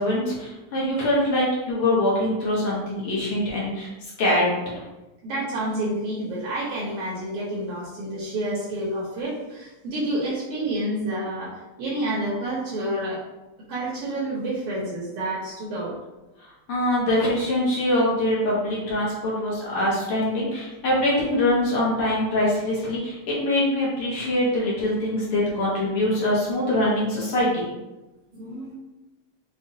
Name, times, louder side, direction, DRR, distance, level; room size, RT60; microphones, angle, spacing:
voice 1, 0.0-4.8 16.7-27.7, left 1 dB, 65° left, -5 dB, 1.4 m, -23 dB
voice 2, 5.2-13.2 13.7-15.9 28.3-28.7, right 1 dB, 65° right, -6 dB, 1.5 m, -29 dB
5.4 x 2.3 x 2.7 m, 1.0 s
omnidirectional pair, 3.4 m